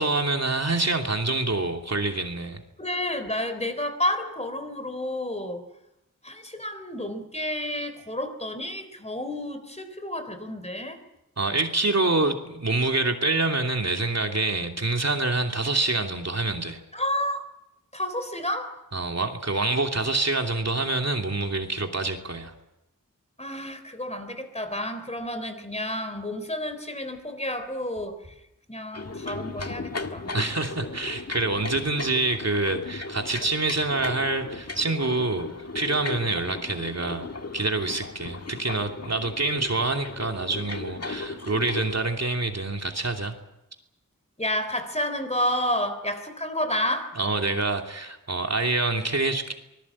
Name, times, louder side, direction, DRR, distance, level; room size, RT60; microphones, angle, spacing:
voice 1, 0.0-2.6 11.4-16.8 18.9-22.5 30.3-35.5 35.7-37.3 37.5-43.3 47.1-49.5, right 2 dB, 50° right, 3 dB, 2.9 m, -26 dB
voice 2, 2.8-5.7 6.2-11.0 16.9-17.5 17.9-18.8 23.4-28.3 28.7-30.3 44.4-47.2, left 1 dB, 20° left, 9 dB, 3.7 m, -30 dB
sound 1, 28.9-42.0, left 3 dB, 45° left, 1.8 m, -36 dB
25.5 x 20.0 x 8.6 m, 0.88 s
wide cardioid pair, 65°, 34 cm